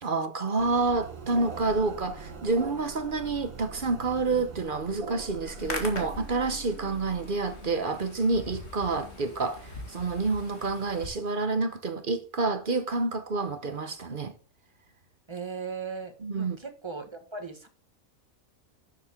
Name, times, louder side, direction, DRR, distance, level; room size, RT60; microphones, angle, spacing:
voice 1, 0.0-14.3 16.2-16.6, right 3 dB, 45° right, 0.9 m, -28 dB
sound 1, 0.6-8.5, right 3 dB, 90° right, 2.4 m, -42 dB
Hands, 5.4-11.1, left 2 dB, 50° left, 2.4 m, -42 dB
voice 2, 15.3-17.7, right 5 dB, 20° right, 1.5 m, -38 dB
11.5 x 7.4 x 3.6 m
omnidirectional pair, 1.4 m